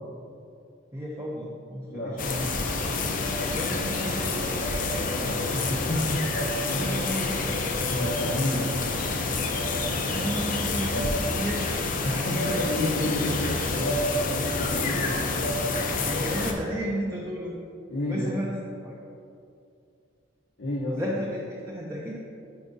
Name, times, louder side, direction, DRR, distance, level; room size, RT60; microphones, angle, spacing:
voice 1, 0.9-2.5 3.5-4.7 6.7-7.5 9.8-11.9 16.0-17.6 18.1-18.6 18.8-19.0 21.0-22.2, equal, 15° right, -3 dB, 0.5 m, -33 dB
sound 1, 2.2-16.5, left 3 dB, 45° left, 0.5 m, -28 dB
voice 2, 4.9-6.3 6.7-7.1 7.9-8.8 12.0-15.7 17.9-18.3 20.6-21.0, left 1 dB, 85° left, -8 dB, 1.0 m, -31 dB
9.3 x 4.7 x 2.7 m, 2.4 s
head